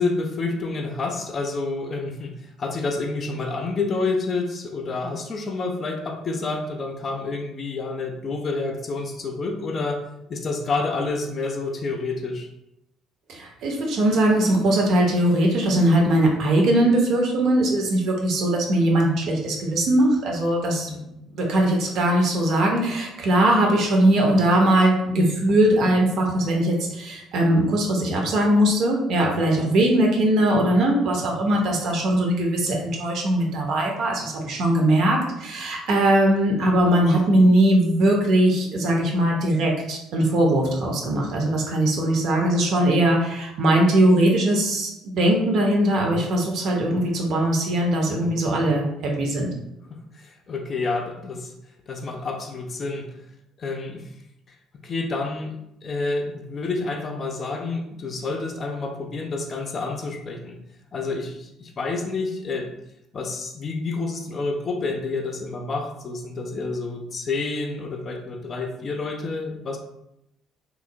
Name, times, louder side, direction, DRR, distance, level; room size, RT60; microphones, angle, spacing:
voice 1, 0.0-12.5 20.8-21.1 49.9-51.5 51.9-53.2 53.6-54.1 54.8-55.5 55.8-60.6 60.9-62.7 63.1-69.8, left 3 dB, 40° left, 3 dB, 0.5 m, -29 dB
voice 2, 13.3-21.0 21.3-49.5, right 1 dB, 55° right, 0 dB, 0.6 m, -20 dB
2.9 x 2.0 x 2.6 m, 0.83 s
figure-of-eight pair, 50°, 0 cm